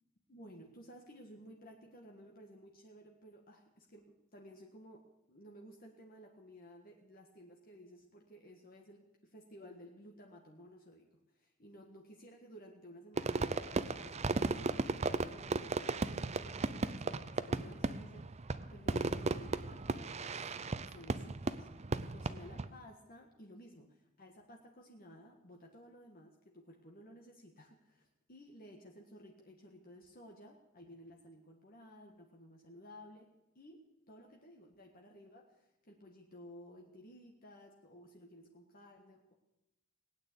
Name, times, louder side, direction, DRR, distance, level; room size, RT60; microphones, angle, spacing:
voice 1, 0.3-20.3 20.7-33.3 33.6-39.3, equal, 45° left, 1 dB, 1.7 m, -56 dB
Fireworks, 13.2-22.7, right 3 dB, 30° right, 0.6 m, -36 dB
19.0 x 9.2 x 8.3 m, 0.93 s
head